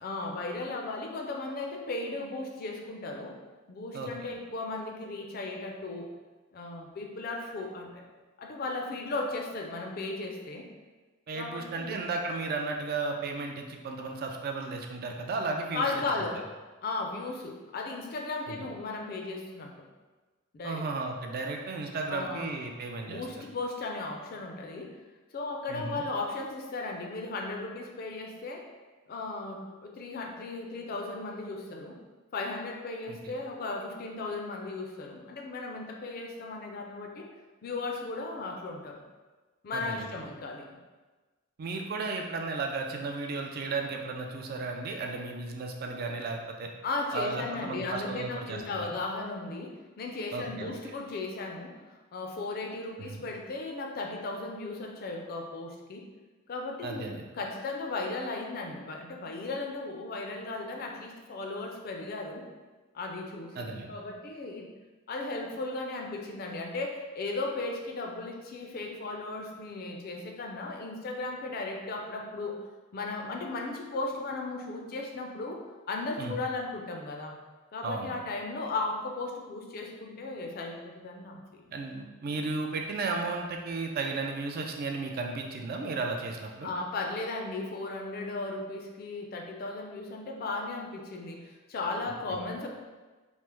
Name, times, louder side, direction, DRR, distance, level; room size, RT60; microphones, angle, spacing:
voice 1, 0.0-3.3 3.7-6.1 6.5-8.0 8.4-10.7 11.3-12.0 15.7-16.4 16.8-19.7 20.5-20.8 22.1-22.6 23.1-24.9 25.3-28.7 29.1-32.0 32.3-37.3 37.6-39.0 39.6-40.7 46.8-51.7 52.1-56.0 56.5-62.4 62.9-64.7 65.1-72.6 72.9-75.6 75.9-77.4 77.7-81.6 86.6-92.7, left 3 dB, 45° left, 2 dB, 0.4 m, -36 dB
voice 2, 11.3-15.8 16.2-16.3 18.5-18.7 20.6-23.2 25.7-26.0 33.1-33.3 39.7-40.1 41.6-46.7 47.1-48.9 50.3-50.7 53.0-53.2 56.8-57.2 63.6-63.9 76.2-76.4 77.8-78.1 81.7-86.7 92.3-92.4, right 3 dB, 50° right, 3 dB, 0.3 m, -34 dB
3.2 x 2.0 x 2.9 m, 1.3 s
head